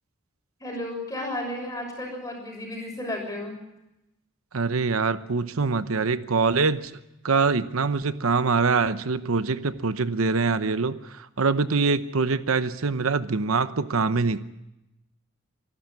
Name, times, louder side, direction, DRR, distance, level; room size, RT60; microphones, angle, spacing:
voice 1, 0.6-3.6, left 1 dB, 15° left, 1 dB, 6.8 m, -33 dB
voice 2, 4.5-6.9 7.2-14.4, right 4 dB, 90° right, 13 dB, 0.9 m, -24 dB
25.0 x 12.5 x 9.5 m, 0.91 s
head